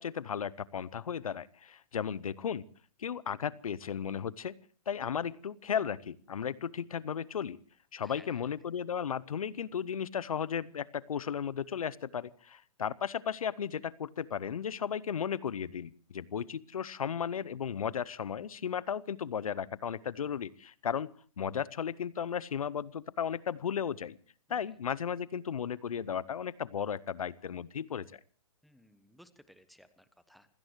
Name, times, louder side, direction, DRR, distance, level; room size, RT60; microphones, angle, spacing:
voice 1, 0.0-2.6 3.0-4.5 4.9-7.6 7.9-21.1 21.4-24.2 24.5-28.2, left 8 dB, 75° left, 21 dB, 0.7 m, -35 dB
voice 2, 8.0-8.4 24.5-24.7 28.6-30.5, equal, ahead, 12 dB, 1.1 m, -59 dB
26.5 x 17.0 x 3.1 m, 0.42 s
hypercardioid pair, 125°, 18 cm